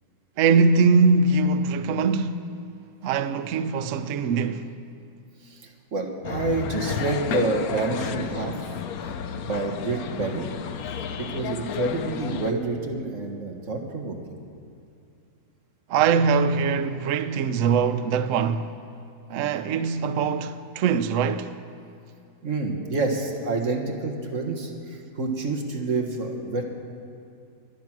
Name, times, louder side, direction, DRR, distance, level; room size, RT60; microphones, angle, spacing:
voice 1, 0.4-2.4 3.0-4.7 15.9-18.7 19.3-21.5, right 5 dB, 85° right, 0.6 m, -22 dB
voice 2, 5.4-8.5 9.0-10.4 11.2-14.4 22.4-26.6, right 3 dB, 40° right, 1.7 m, -28 dB
sound 1, 6.2-12.5, left 7 dB, 60° left, 1.0 m, -32 dB
23.0 x 9.4 x 6.1 m
omnidirectional pair, 2.2 m